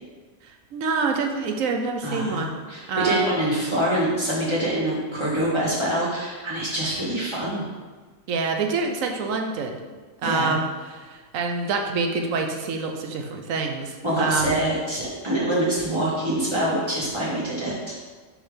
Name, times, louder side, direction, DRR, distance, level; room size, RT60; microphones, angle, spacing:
voice 1, 0.4-2.5 2.9-3.4 8.3-9.8 10.2-14.5, right 4 dB, 90° right, 4 dB, 1.1 m, -26 dB
voice 2, 2.0-7.6 10.2-10.6 14.0-17.9, right 1 dB, 20° right, -7 dB, 1.7 m, -25 dB
4.9 x 4.4 x 5.0 m, 1.4 s
omnidirectional pair, 1.4 m